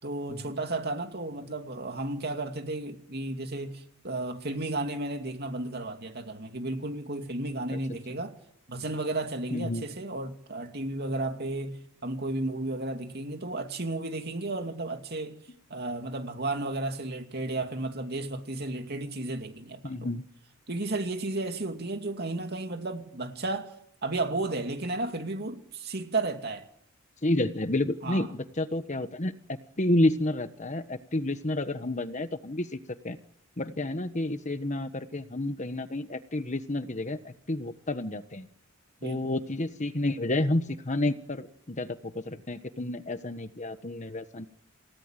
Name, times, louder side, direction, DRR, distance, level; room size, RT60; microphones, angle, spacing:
voice 1, 0.0-8.3 8.7-15.4 15.7-20.1 20.7-23.7 24.0-26.6 28.0-28.3 39.0-39.2, right 2 dB, 50° right, 2.7 m, -33 dB
voice 2, 9.5-9.8 19.8-20.2 27.2-29.3 29.8-32.8 33.0-33.2 33.6-38.5 39.0-44.5, left 1 dB, 35° left, 1.3 m, -30 dB
28.5 x 17.5 x 9.2 m
head